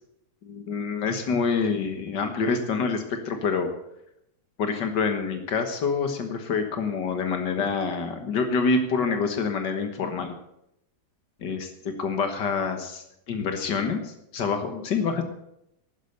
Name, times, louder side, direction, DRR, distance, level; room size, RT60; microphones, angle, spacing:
voice 1, 0.4-3.7 4.6-10.3 11.4-15.2, left 5 dB, 85° left, 6 dB, 2.0 m, -27 dB
12.0 x 10.0 x 7.9 m, 0.79 s
omnidirectional pair, 1.8 m